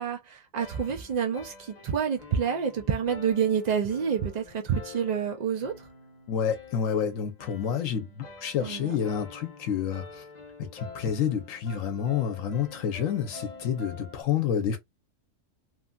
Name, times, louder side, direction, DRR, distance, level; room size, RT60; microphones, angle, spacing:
voice 1, 0.0-5.7 8.6-8.9, right 7 dB, 70° right, 0.4 m, -28 dB
sound 1, 0.6-14.2, left 4 dB, 40° left, 0.8 m, -47 dB
voice 2, 6.3-10.2 10.6-14.8, left 8 dB, 85° left, 1.0 m, -29 dB
3.1 x 2.5 x 2.2 m
omnidirectional pair, 1.3 m